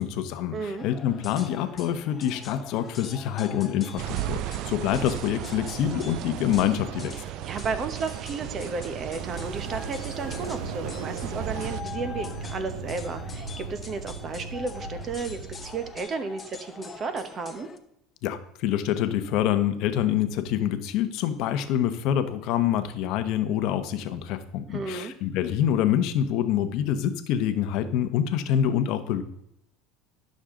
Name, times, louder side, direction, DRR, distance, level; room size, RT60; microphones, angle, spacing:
voice 1, 0.0-7.1 18.2-29.2, left 10 dB, 60° left, 9 dB, 0.9 m, -26 dB
voice 2, 0.5-0.9 5.0-5.1 7.4-17.7 24.7-25.1, right 4 dB, 30° right, 9 dB, 1.0 m, -33 dB
sound 1, 0.8-17.8, left 5 dB, 20° left, 0.8 m, -44 dB
sound 2, 4.0-11.8, right 13 dB, 55° right, 0.4 m, -35 dB
sound 3, 9.0-16.0, right 4 dB, 85° right, 1.8 m, -37 dB
11.5 x 6.4 x 3.8 m, 0.77 s
supercardioid pair, 135°, 0 cm